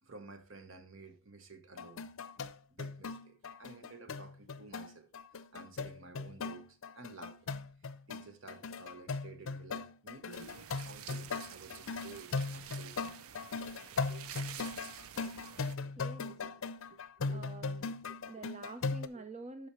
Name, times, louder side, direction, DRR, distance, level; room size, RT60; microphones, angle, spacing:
voice 1, 0.0-2.1 2.7-7.5 7.8-13.2 13.9-14.3 15.2-15.5 15.8-16.0 16.3-16.6 16.9-17.5 18.3-18.5 19.1-19.2, right 3 dB, 70° right, 1.1 m, -53 dB
sound 1, 1.8-19.1, left 4 dB, 75° left, 0.5 m, -39 dB
sound 2, 10.3-15.8, right 9 dB, 90° right, 0.5 m, -49 dB
voice 2, 16.0-16.4 17.3-17.9 18.3-19.7, right 3 dB, 30° right, 0.5 m, -47 dB
12.0 x 4.8 x 3.1 m
head